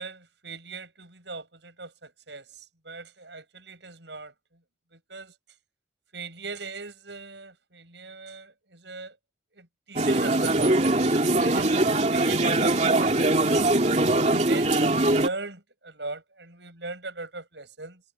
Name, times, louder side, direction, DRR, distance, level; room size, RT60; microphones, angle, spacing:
voice 1, 0.0-2.4 2.8-4.3 4.9-5.3 6.1-9.2 9.5-10.8 11.1-13.7 14.5-18.0, right 3 dB, 70° right, 7.8 m, -39 dB
sound 1, 10.0-15.3, right 2 dB, 35° right, 2.6 m, -22 dB
head